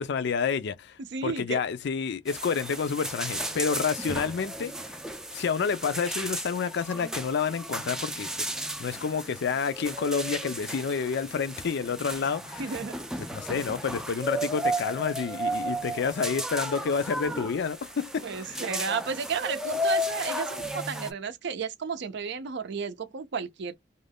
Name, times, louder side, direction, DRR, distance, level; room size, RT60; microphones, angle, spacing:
voice 1, 0.0-4.7 5.3-8.3 8.8-12.7 13.3-18.6, left 6 dB, 65° left, 0.4 m, -29 dB
voice 2, 1.0-1.6 12.6-13.0 18.2-23.8, right 5 dB, 65° right, 0.5 m, -33 dB
sound 1, 2.3-21.1, equal, 5° right, 0.4 m, -34 dB
2.5 x 2.2 x 3.4 m
head